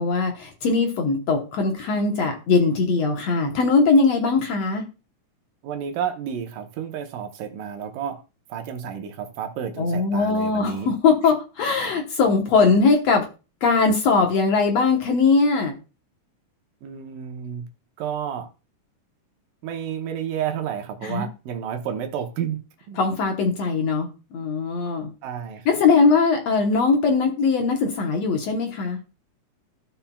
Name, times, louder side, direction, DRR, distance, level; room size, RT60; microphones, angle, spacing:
voice 1, 0.0-4.8 9.8-13.3 13.6-15.7 21.0-21.3 23.0-25.1 25.7-29.0, left 4 dB, 65° left, 1.9 m, -20 dB
voice 2, 5.6-8.2 8.5-10.9 11.2-11.3 16.8-17.7 18.0-18.5 19.6-22.6 22.9-23.0 25.2-25.8, right 8 dB, 85° right, 2.6 m, -31 dB
15.5 x 5.7 x 2.3 m
omnidirectional pair, 3.8 m